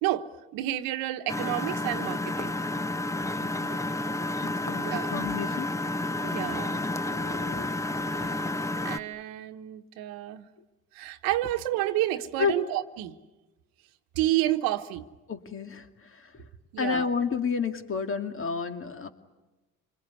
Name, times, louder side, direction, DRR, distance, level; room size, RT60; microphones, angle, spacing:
voice 1, 0.0-2.6 3.7-3.8 4.1-4.2 4.8-5.1 6.2-6.9 8.1-8.5 8.8-10.5 10.9-13.2 14.1-15.0 16.7-17.1, right 14 dB, 80° right, 1.3 m, -30 dB
Engine, 1.3-9.0, left 2 dB, 10° left, 1.0 m, -30 dB
voice 2, 3.4-3.7 4.4-5.7 7.0-7.6 8.1-8.4 12.4-12.5 15.3-15.9 16.1-16.2 16.8-19.1, left 5 dB, 35° left, 2.4 m, -31 dB
26.5 x 21.5 x 9.7 m
supercardioid pair, 85°, 34 cm